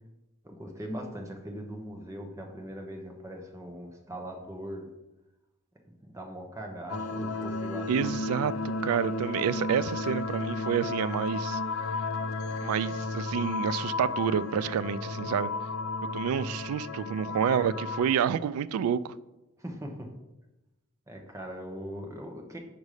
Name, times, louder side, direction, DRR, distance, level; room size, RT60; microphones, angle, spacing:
voice 1, 0.4-4.9 6.0-8.1 19.6-20.1 21.1-22.6, equal, 15° right, 0.8 m, -40 dB
sound 1, 6.9-18.1, left 3 dB, 75° left, 0.5 m, -33 dB
voice 2, 7.9-8.5 8.8-11.6 12.6-15.5 16.1-19.1, right 8 dB, 90° right, 0.3 m, -28 dB
5.3 x 5.1 x 4.8 m
head